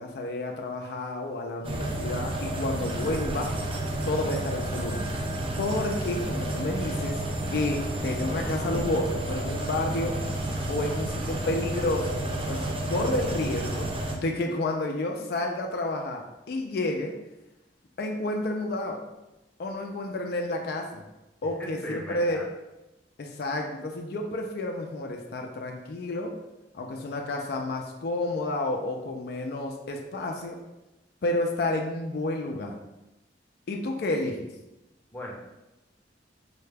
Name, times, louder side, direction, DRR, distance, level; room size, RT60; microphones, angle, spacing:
voice 1, 0.0-3.5 4.0-5.1 5.6-7.2 7.5-10.2 10.7-13.9 14.2-17.1 18.0-19.0 19.6-21.1 21.4-22.4 23.2-26.4 26.7-30.6 31.2-32.8 33.7-34.5, left 2 dB, 60° left, 2 dB, 0.4 m, -30 dB
sound 1, 1.6-14.2, right 1 dB, 30° right, 0.4 m, -31 dB
voice 2, 21.6-22.4 35.1-35.3, equal, 10° left, -3 dB, 0.6 m, -37 dB
4.6 x 2.2 x 3.3 m, 0.98 s
head